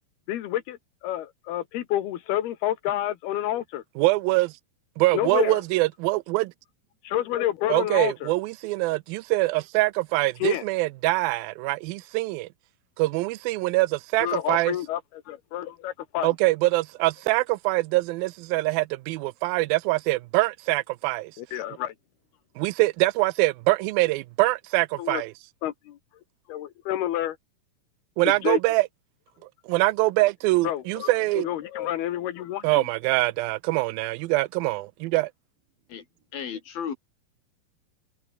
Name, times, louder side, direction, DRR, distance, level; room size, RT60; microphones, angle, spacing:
voice 1, 0.3-3.8 5.1-5.6 7.0-8.3 10.4-10.6 14.2-15.0 15.3-16.3 21.4-22.0 25.0-25.2 25.6-26.0 26.5-27.4 28.3-28.6 30.6-31.1 31.4-32.9, left 12 dB, 85° left, 3.5 m, -29 dB
voice 2, 4.0-4.5 5.0-6.5 7.7-12.5 13.0-14.8 16.2-21.3 22.6-25.3 28.2-28.9 29.7-31.5 32.6-35.3, right 20 dB, 80° right, 2.3 m, -24 dB
voice 3, 36.3-36.9, left 8 dB, 70° left, 5.1 m, -33 dB
omnidirectional pair, 4.4 m